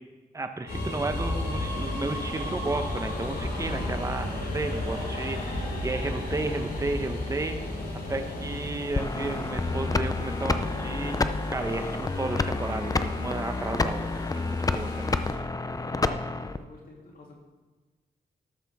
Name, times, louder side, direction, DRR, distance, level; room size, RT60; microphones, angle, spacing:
voice 1, 0.3-7.7 8.1-11.2 11.5-15.2, right 2 dB, 20° right, 6 dB, 1.0 m, -33 dB
sound 1, 0.7-15.3, left 1 dB, 80° left, 3.6 m, -34 dB
sound 2, 9.0-16.6, left 3 dB, 20° left, 0.5 m, -29 dB
voice 2, 15.7-17.4, left 2 dB, 65° left, -2 dB, 2.9 m, -50 dB
12.5 x 12.5 x 3.6 m, 1.3 s
cardioid pair, 100°, 16 cm